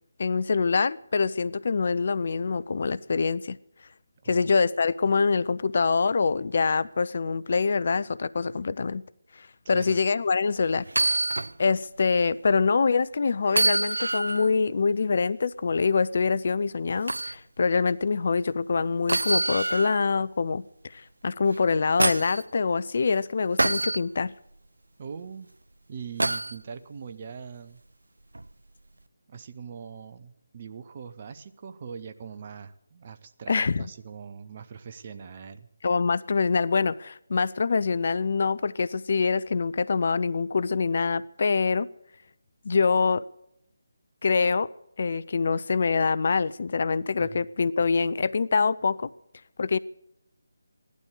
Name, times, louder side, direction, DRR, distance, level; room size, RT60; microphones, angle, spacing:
voice 1, 0.2-3.6 4.3-9.0 9.4-11.2 11.6-24.3 33.5-33.9 35.8-41.9 42.6-43.2 44.2-44.7 45.0-49.1 49.6-49.8, left 4 dB, 45° left, 19 dB, 0.5 m, -25 dB
voice 2, 4.2-4.5 9.6-10.0 25.0-25.5 25.9-27.8 29.3-35.7 47.2-47.4, right 6 dB, 30° right, 10 dB, 0.8 m, -42 dB
sound 1, 10.9-11.5 12.0-12.1 13.5-14.5 17.1-17.4 19.1-20.0 21.5-22.4 23.6-24.0 26.2-26.6 28.3-28.5, right 2 dB, 65° right, 0.5 m, -26 dB
16.5 x 12.0 x 6.5 m, 0.81 s
figure-of-eight pair, 150°, 0 cm